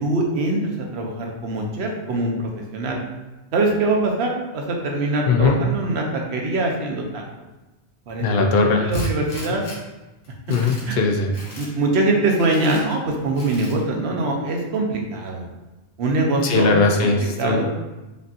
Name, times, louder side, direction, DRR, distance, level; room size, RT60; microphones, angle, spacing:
voice 1, 0.0-3.0 3.5-7.2 8.1-8.5 8.8-9.6 10.8-11.0 11.4-15.5 16.0-17.1 17.4-17.6, right 2 dB, 65° right, 0 dB, 1.0 m, -23 dB
voice 2, 5.3-5.6 8.2-9.0 10.5-11.3 16.4-17.6, left 3 dB, 60° left, 3 dB, 0.7 m, -19 dB
Tools, 8.9-9.8 10.2-10.9 11.3-11.7 12.4-12.8 13.3-13.8, left 2 dB, 90° left, 1.4 m, -39 dB
5.3 x 2.7 x 2.5 m, 1.1 s
omnidirectional pair, 1.2 m